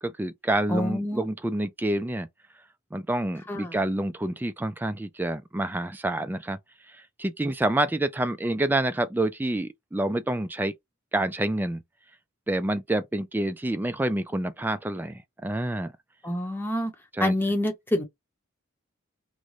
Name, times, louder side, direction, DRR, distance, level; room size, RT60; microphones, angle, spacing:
voice 1, 0.0-2.3 2.9-6.6 6.9-10.7 11.1-11.8 12.5-15.9 17.1-17.3, right 1 dB, 10° right, 0.3 m, -28 dB
voice 2, 0.7-1.3 3.5-3.7 16.2-16.9 17.2-18.0, left 1 dB, 10° left, 0.9 m, -27 dB
3.1 x 2.1 x 3.8 m
head